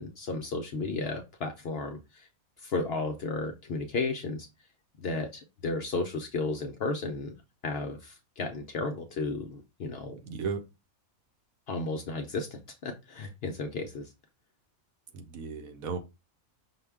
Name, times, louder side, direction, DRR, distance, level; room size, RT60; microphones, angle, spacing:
voice 1, 0.0-2.3 2.6-4.5 5.0-7.3 7.6-10.2 11.7-14.1, left 3 dB, 60° left, 4 dB, 0.7 m, -33 dB
voice 2, 10.2-10.6 15.1-16.0, right 5 dB, 80° right, 6 dB, 1.2 m, -35 dB
5.8 x 2.3 x 3.4 m, 0.26 s
omnidirectional pair, 1.5 m